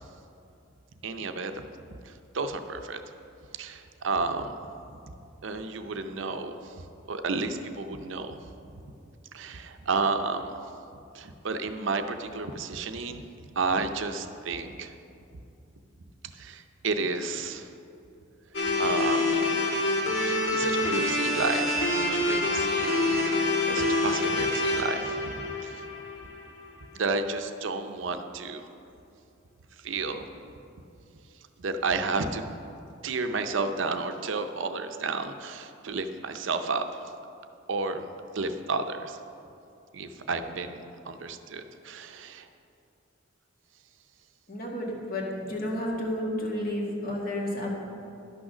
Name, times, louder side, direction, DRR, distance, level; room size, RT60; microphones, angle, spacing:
voice 1, 1.0-1.5 2.1-3.0 3.6-4.5 5.4-6.6 7.1-8.4 9.3-10.6 11.1-13.3 13.6-14.9 16.4-17.7 18.8-19.6 20.2-23.4 23.7-25.8 26.9-28.6 29.8-30.2 31.6-32.4 33.0-37.0 37.7-38.1 38.3-39.2 39.9-42.4, right 4 dB, 65° right, 8 dB, 0.6 m, -31 dB
sound 1, 18.5-26.7, left 2 dB, 70° left, 1.5 m, -26 dB
voice 2, 44.5-47.7, left 1 dB, 45° left, -1 dB, 1.7 m, -31 dB
11.5 x 6.3 x 6.1 m, 2.7 s
head